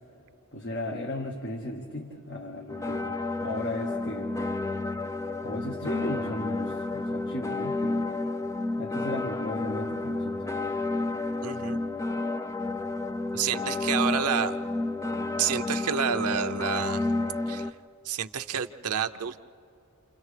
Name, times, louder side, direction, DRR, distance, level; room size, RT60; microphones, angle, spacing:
voice 1, 0.5-3.1 3.4-4.3 5.4-8.1 8.8-10.4, left 1 dB, 55° left, 0 dB, 1.5 m, -35 dB
sound 1, 2.7-17.7, left 2 dB, 15° left, 0.4 m, -31 dB
voice 2, 11.4-11.8 13.3-14.6 15.4-17.1 17.5-17.7 18.0-19.4, right 7 dB, 85° right, 9 dB, 0.7 m, -29 dB
29.5 x 28.5 x 3.3 m, 2.7 s
head